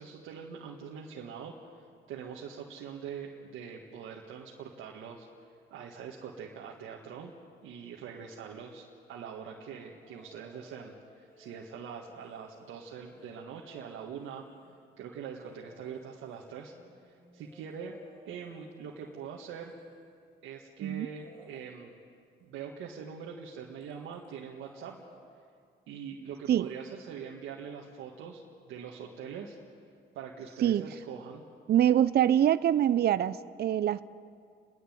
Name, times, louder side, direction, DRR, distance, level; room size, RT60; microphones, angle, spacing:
voice 1, 0.0-1.5 2.1-5.3 5.7-7.3 7.6-14.5 15.0-16.7 17.1-18.0 18.2-19.7 20.4-21.9 22.4-25.0 25.9-28.4 28.7-29.6 30.1-31.4, right 7 dB, 90° right, -2 dB, 1.8 m, -43 dB
sound 1, 10.0-10.9 11.3-14.8 15.3-20.2 21.0-21.5 23.4-23.5 23.8-24.3 24.5-25.2 26.6-26.7, equal, 80° left, 7.2 m, -60 dB
voice 2, 31.7-34.0, right 10 dB, 55° right, 15 dB, 0.6 m, -24 dB
30.0 x 11.0 x 9.4 m, 2.2 s
cardioid pair, 90°, 20 cm